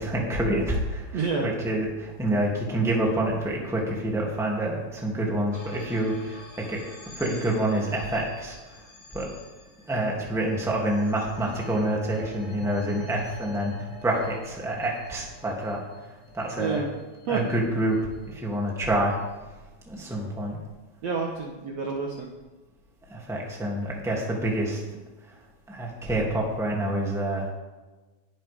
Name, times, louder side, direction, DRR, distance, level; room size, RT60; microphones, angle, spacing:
voice 1, 0.0-8.9 9.1-9.3 9.9-16.8 17.3-19.2 19.9-20.6 23.1-24.8 25.7-27.5, right 1 dB, ahead, -2 dB, 2.1 m, -27 dB
voice 2, 1.1-1.5 16.6-16.9 17.3-17.4 21.0-22.3, right 5 dB, 55° right, 0 dB, 2.0 m, -28 dB
sound 1, 5.5-17.9, left 1 dB, 35° left, 1.6 m, -44 dB
20.5 x 11.5 x 3.7 m, 1.2 s
omnidirectional pair, 4.3 m